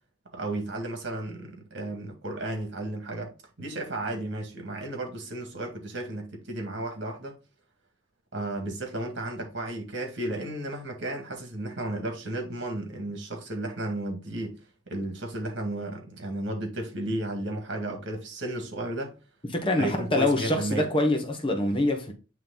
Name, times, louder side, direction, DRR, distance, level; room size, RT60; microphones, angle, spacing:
voice 1, 0.3-7.3 8.3-19.1 19.8-20.9, right 1 dB, 65° right, 1.9 m, -33 dB
voice 2, 19.5-22.1, left 2 dB, 25° left, 1.0 m, -25 dB
8.9 x 3.2 x 3.9 m
head